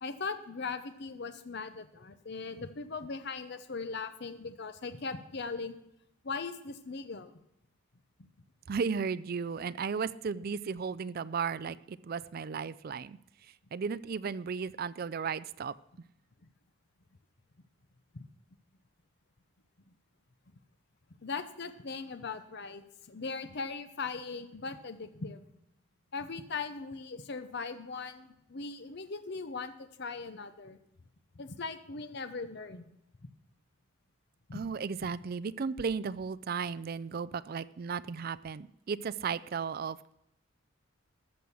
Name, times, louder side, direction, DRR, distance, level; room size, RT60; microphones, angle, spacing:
voice 1, 0.0-5.8 6.2-7.3 8.2-8.3 18.1-18.2 21.2-25.4 26.1-30.8 31.4-32.9 34.5-34.6, left 4 dB, 55° left, 10 dB, 0.7 m, -39 dB
voice 2, 8.7-13.2 13.7-15.7 34.5-40.1, right 5 dB, 45° right, 16 dB, 0.4 m, -35 dB
14.0 x 6.3 x 7.0 m, 0.82 s
head